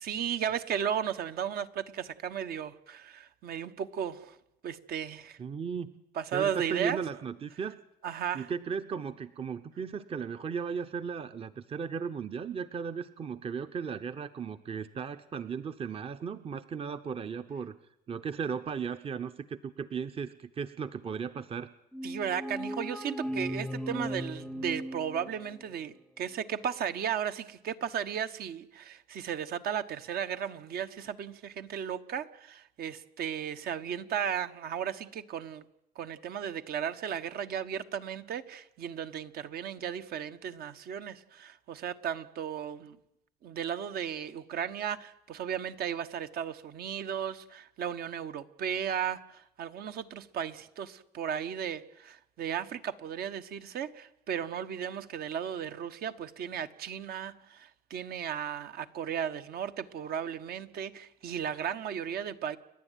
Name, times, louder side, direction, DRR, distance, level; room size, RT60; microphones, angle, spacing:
voice 1, 0.0-4.4 4.6-5.4 6.1-7.0 8.0-8.5 22.0-35.6 35.9-43.0 43.4-62.6, right 8 dB, 65° right, 9 dB, 1.3 m, -35 dB
voice 2, 5.4-6.0 6.3-7.8 8.3-17.8 18.1-21.7, right 6 dB, 35° right, 11 dB, 0.8 m, -36 dB
sound 1, 21.9-25.7, equal, 5° left, 0.7 m, -37 dB
30.0 x 11.0 x 9.2 m, 0.83 s
cardioid pair, 110°, 17 cm